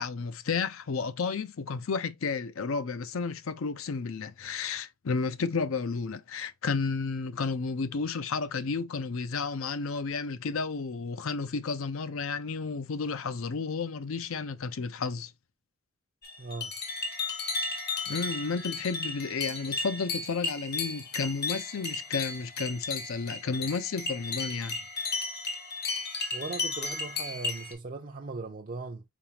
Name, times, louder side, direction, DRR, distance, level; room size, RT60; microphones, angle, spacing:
voice 1, 0.0-15.3 18.1-24.8, left 4 dB, 70° left, 0.5 m, -32 dB
sound 1, 16.2-27.7, left 3 dB, 50° left, 1.0 m, -34 dB
voice 2, 16.4-16.7 26.3-29.0, right 3 dB, 40° right, 0.4 m, -38 dB
4.8 x 3.6 x 2.8 m
head